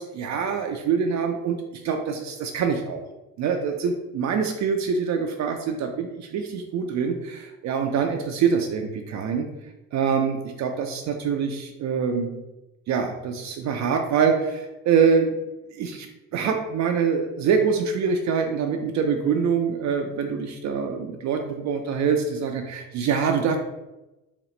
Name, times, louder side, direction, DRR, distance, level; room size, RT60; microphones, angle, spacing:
voice 1, 0.0-3.0 3.4-9.5 9.9-12.4 12.9-15.3 15.8-16.1 16.3-23.6, right 6 dB, 40° right, 4 dB, 0.5 m, -25 dB
4.9 x 2.4 x 3.1 m, 1.0 s
figure-of-eight pair, 55°, 44 cm